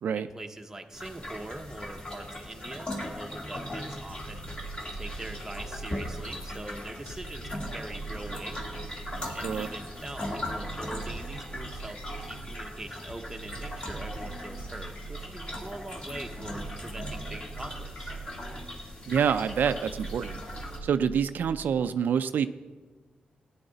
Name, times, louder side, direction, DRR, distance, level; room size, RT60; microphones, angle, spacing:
voice 1, 0.1-4.5 4.9-8.6 9.3-18.1, right 2 dB, 10° right, 4 dB, 0.8 m, -43 dB
sound 1, 0.9-20.8, left 1 dB, 30° left, 1.9 m, -39 dB
sound 2, 4.1-21.8, right 4 dB, 85° left, 2.8 m, -43 dB
voice 2, 19.1-20.4 20.8-22.5, right 7 dB, 75° right, 10 dB, 0.4 m, -26 dB
17.5 x 9.8 x 3.9 m, 1.3 s
wide cardioid pair, 155°, 3 cm